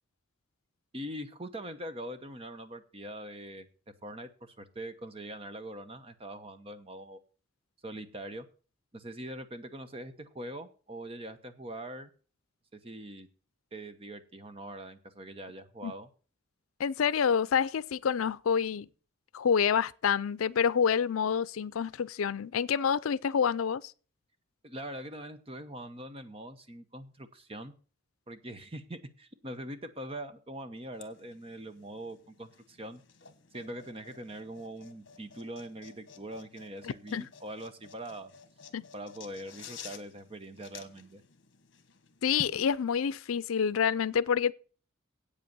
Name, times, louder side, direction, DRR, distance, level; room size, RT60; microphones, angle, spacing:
voice 1, 0.9-3.7 4.0-7.2 7.8-8.5 8.9-12.1 12.7-13.3 13.7-16.1 24.6-27.7 28.3-33.0 33.5-38.3 38.9-41.2, right 1 dB, 25° right, 1.0 m, -43 dB
voice 2, 16.8-18.9 19.3-23.8 37.1-37.2 38.7-38.8 42.2-44.5, left 7 dB, 90° left, 0.5 m, -27 dB
sound 1, 30.9-42.6, left 5 dB, 55° left, 1.3 m, -52 dB
8.5 x 8.0 x 6.9 m
head